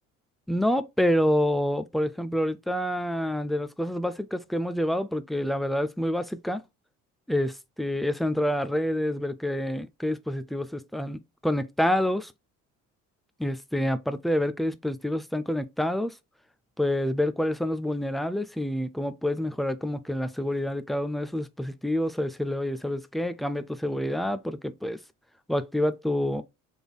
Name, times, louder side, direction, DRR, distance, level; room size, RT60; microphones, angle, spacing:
voice 1, 0.5-6.6 7.3-12.3 13.4-16.1 16.8-25.0 25.5-26.4, left 1 dB, ahead, 0.3 m, -27 dB
3.5 x 3.5 x 2.2 m
supercardioid pair, 65°, 39 cm